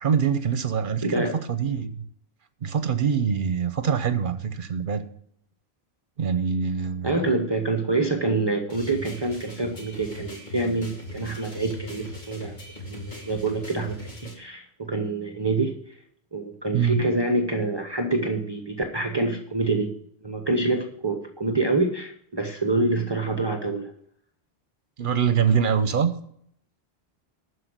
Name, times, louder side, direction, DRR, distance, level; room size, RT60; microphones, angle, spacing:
voice 1, 0.0-2.0 2.6-5.0 6.2-7.3 16.7-17.0 25.0-26.1, right 7 dB, 55° right, 11 dB, 1.0 m, -24 dB
voice 2, 1.0-1.4 7.0-12.5 12.8-16.0 16.3-19.9 20.2-23.9, right 2 dB, 25° right, 4 dB, 1.0 m, -26 dB
sound 1, 8.7-14.3, left 1 dB, 50° left, 2.4 m, -39 dB
12.5 x 4.8 x 8.1 m, 0.68 s
omnidirectional pair, 1.0 m